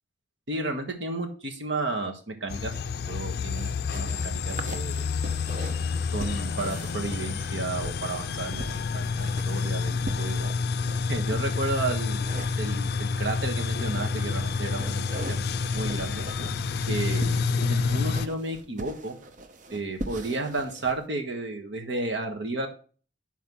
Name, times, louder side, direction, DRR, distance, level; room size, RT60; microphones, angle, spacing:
voice 1, 0.5-2.7 3.1-3.7 3.9-5.0 6.1-10.5 11.1-16.2 16.9-19.2 19.7-22.7, right 2 dB, 75° right, 3 dB, 1.4 m, -32 dB
sound 1, 2.5-18.3, left 4 dB, 55° left, 0.4 m, -29 dB
sound 2, 3.5-11.4 12.0-13.1 13.6-21.0, right 2 dB, 45° right, 0.7 m, -41 dB
6.1 x 4.6 x 5.5 m, 0.39 s
head